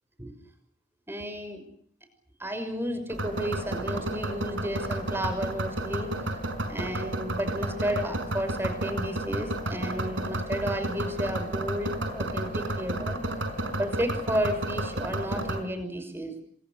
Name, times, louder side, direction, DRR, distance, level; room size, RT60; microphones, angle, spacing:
voice 1, 1.1-1.6 2.4-6.3 6.7-13.2 13.8-16.4, equal, 10° right, 8 dB, 6.0 m, -32 dB
sound 1, 3.1-15.6, right 1 dB, 80° right, 5.2 m, -32 dB
28.0 x 26.0 x 6.6 m, 0.65 s
head